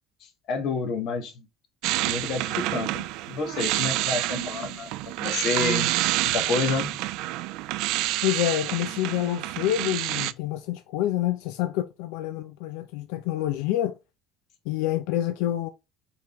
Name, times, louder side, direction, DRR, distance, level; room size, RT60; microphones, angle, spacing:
voice 1, 0.5-1.4 2.0-5.9 6.2-7.0, left 4 dB, 50° left, 1.2 m, -29 dB
sound 1, 1.8-10.3, right 17 dB, 70° right, 0.3 m, -28 dB
voice 2, 8.2-13.9 14.7-15.7, left 13 dB, 90° left, 0.5 m, -27 dB
4.7 x 3.6 x 3.0 m
cardioid pair, 155°, 0 cm